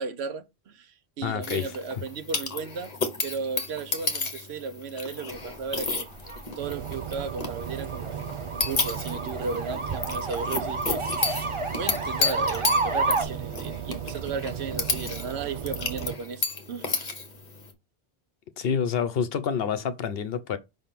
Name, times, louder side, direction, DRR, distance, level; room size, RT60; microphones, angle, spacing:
voice 1, 0.0-2.9 3.2-6.1 6.6-8.2 8.6-11.0 11.7-17.1, right 5 dB, 75° right, 1.0 m, -35 dB
voice 2, 1.2-1.7 18.6-20.6, left 7 dB, 65° left, 0.9 m, -27 dB
sound 1, 1.4-17.7, left 3 dB, 40° left, 1.3 m, -33 dB
sound 2, 5.3-13.2, right 3 dB, 30° right, 0.8 m, -31 dB
sound 3, 6.6-16.2, right 8 dB, 55° right, 0.3 m, -36 dB
5.4 x 3.6 x 5.8 m
omnidirectional pair, 1.1 m